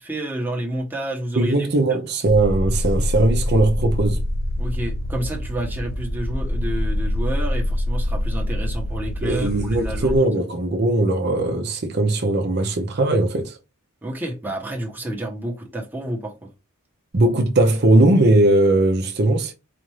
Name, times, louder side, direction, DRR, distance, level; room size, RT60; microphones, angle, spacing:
voice 1, 0.0-1.6 4.6-10.2 14.0-16.5, right 1 dB, 10° right, 0.9 m, -29 dB
voice 2, 1.4-4.2 9.2-13.6 17.1-19.5, right 2 dB, 50° right, 0.6 m, -19 dB
sound 1, 2.3-10.2, left 1 dB, 45° left, 0.5 m, -25 dB
4.2 x 2.5 x 3.1 m
head